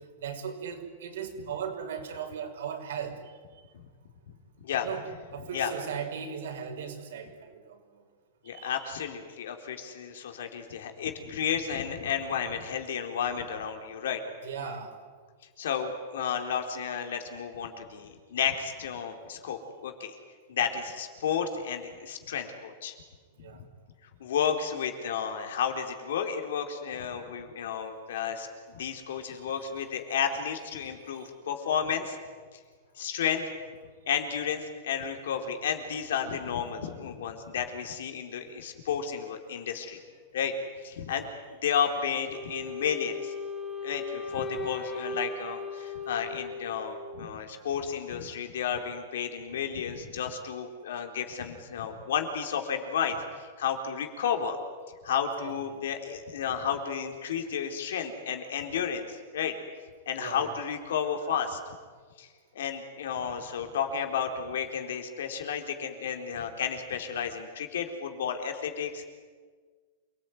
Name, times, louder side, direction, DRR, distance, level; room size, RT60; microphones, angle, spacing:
voice 1, 0.2-3.2 4.8-8.0 8.4-8.9 14.4-14.9 23.4-23.6 29.1-29.9 30.8-31.3 41.1-41.3 55.4-55.8 60.2-60.5 66.0-66.2, right 7 dB, 80° right, 3 dB, 6.0 m, -39 dB
voice 2, 8.5-14.2 15.6-20.2 20.5-22.9 23.5-23.7 24.2-28.5 28.7-32.2 33.0-33.4 34.1-40.0 40.3-40.5 40.8-41.3 41.6-43.3 43.8-54.6 55.0-59.6 60.1-61.6 62.2-62.3 62.5-69.1, left 7 dB, 80° left, 4 dB, 4.2 m, -32 dB
Wind instrument woodwind instrument, 42.3-47.4, left 3 dB, 15° left, 3.6 m, -37 dB
28.0 x 19.5 x 9.5 m, 1.6 s
supercardioid pair, 160°, 0 cm